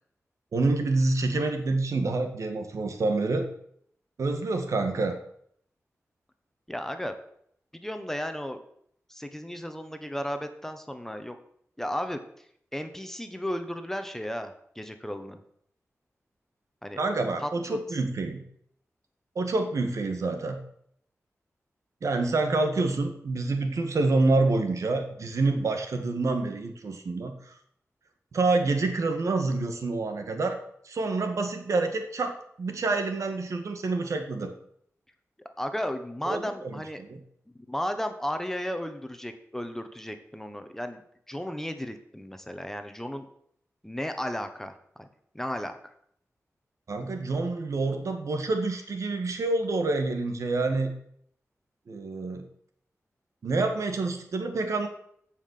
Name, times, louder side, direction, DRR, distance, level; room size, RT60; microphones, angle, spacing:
voice 1, 0.5-3.5 4.2-5.1 17.0-18.4 19.4-20.6 22.0-27.5 28.3-30.6 30.8-32.3 32.6-34.5 36.3-36.7 37.1-37.2 46.9-50.9 51.9-52.4 53.4-54.9, right 3 dB, 80° right, 5 dB, 1.9 m, -27 dB
voice 2, 6.7-7.1 7.7-8.6 9.1-11.4 11.8-12.2 12.7-15.4 16.8-17.0 17.4-17.8 35.6-37.0 37.7-41.0 41.3-43.2 43.8-45.1 45.3-45.8, equal, 5° left, 7 dB, 1.1 m, -34 dB
15.5 x 5.7 x 6.8 m, 0.68 s
wide cardioid pair, 125°, 5 cm